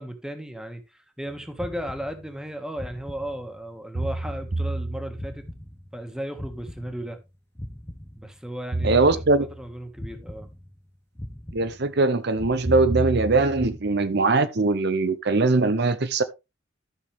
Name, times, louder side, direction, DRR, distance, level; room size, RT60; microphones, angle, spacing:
voice 1, 0.0-5.4 5.9-7.2 8.1-9.2 9.6-10.5, equal, 5° right, 1.6 m, -35 dB
sound 1, 1.3-1.4 3.9-5.6 8.7-9.8 12.6-14.0, right 2 dB, 35° right, 0.5 m, -30 dB
sound 2, 1.6-2.5 2.8-3.7 4.0-6.1 6.4-8.5 8.8-9.7 10.0-10.9 11.2-12.1 12.4-13.3 13.6-13.8, left 1 dB, 10° left, 0.9 m, -40 dB
voice 2, 8.8-9.5 11.5-16.2, right 3 dB, 55° right, 0.8 m, -21 dB
13.5 x 6.4 x 3.3 m
head